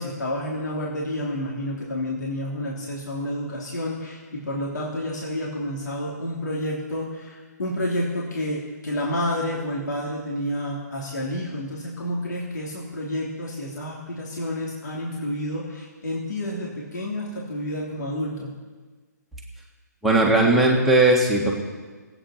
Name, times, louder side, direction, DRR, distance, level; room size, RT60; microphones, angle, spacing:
voice 1, 0.0-18.5, left 1 dB, 70° left, -3 dB, 3.2 m, -29 dB
voice 2, 20.0-21.5, right 2 dB, ahead, -3 dB, 1.8 m, -18 dB
19.5 x 9.0 x 5.8 m, 1.4 s
hypercardioid pair, 160°, 10 cm